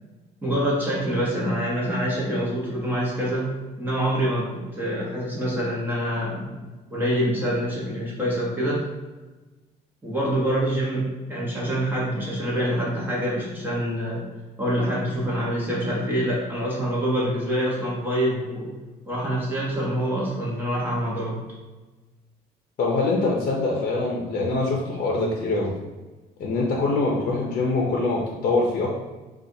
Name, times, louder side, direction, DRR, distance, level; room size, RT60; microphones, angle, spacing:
voice 1, 0.4-3.5 3.8-6.6 6.9-8.8 10.0-14.2 14.6-18.7 19.1-21.4, equal, 10° right, -6 dB, 1.0 m, -26 dB
voice 2, 22.8-25.7 26.4-28.9, left 3 dB, 50° left, -2 dB, 0.7 m, -24 dB
4.2 x 2.4 x 2.8 m, 1.2 s
cardioid pair, 110°, 17 cm